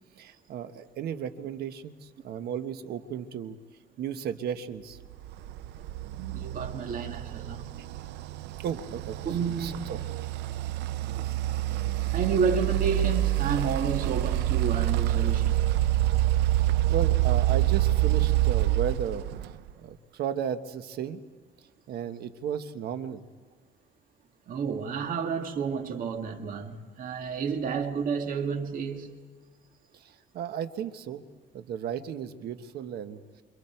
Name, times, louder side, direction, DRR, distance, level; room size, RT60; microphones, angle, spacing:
voice 1, 0.2-3.6 4.0-5.0 8.6-9.3 9.6-10.3 11.2-11.4 16.6-19.2 19.8-21.2 21.9-23.3 29.9-31.2 31.5-33.2, right 8 dB, 70° right, 1.4 m, -35 dB
sound 1, 5.3-19.7, right 14 dB, 85° right, 0.6 m, -27 dB
voice 2, 6.1-7.6 9.3-9.8 12.1-15.6 24.5-29.2, right 6 dB, 55° right, 2.1 m, -30 dB
28.0 x 26.5 x 4.6 m
cardioid pair, 110°, 17 cm